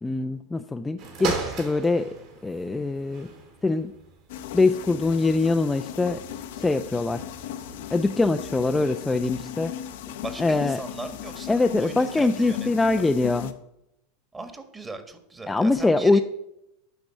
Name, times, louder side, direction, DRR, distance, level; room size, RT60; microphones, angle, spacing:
voice 1, 0.0-2.1 2.4-3.3 3.6-3.9 4.5-6.2 6.6-7.2 7.9-9.7 10.4-10.8 11.5-13.5 15.5-16.2, left 3 dB, 10° left, 6 dB, 0.5 m, -23 dB
sound 1, 1.0-10.5 11.2-11.3, right 5 dB, 55° right, 3.8 m, -39 dB
sound 2, 4.3-13.5, left 11 dB, 65° left, 0.8 m, -37 dB
voice 2, 10.2-12.7 14.3-16.2, right 3 dB, 15° right, 9 dB, 1.6 m, -39 dB
9.9 x 6.0 x 7.7 m, 0.84 s
figure-of-eight pair, 85°, 0 cm